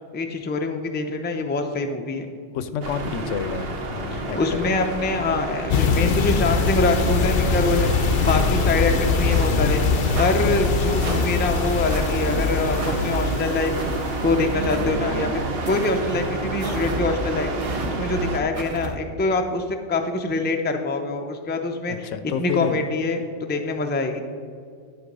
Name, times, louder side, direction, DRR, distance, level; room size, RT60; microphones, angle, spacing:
voice 1, 0.1-2.3 4.1-7.9 8.3-9.8 10.2-13.7 14.2-17.5 17.9-22.1 22.4-24.2, left 3 dB, 15° left, 5 dB, 0.3 m, -24 dB
voice 2, 2.5-5.0 21.9-22.8, left 7 dB, 90° left, 11 dB, 1.0 m, -29 dB
sound 1, 2.8-18.4, right 2 dB, 55° right, 1.0 m, -29 dB
sound 2, 5.7-14.8, left 5 dB, 60° left, 0.7 m, -23 dB
sound 3, 8.2-8.7 9.2-9.6 10.1-10.4 11.0-11.3 11.9-12.1 12.7-13.0 13.7-14.0 14.6-15.1 15.6-16.0 16.6-17.0 17.6-17.9 18.5-18.9, right 3 dB, 35° right, 0.7 m, -32 dB
11.5 x 4.5 x 5.3 m, 2.2 s
omnidirectional pair, 1.2 m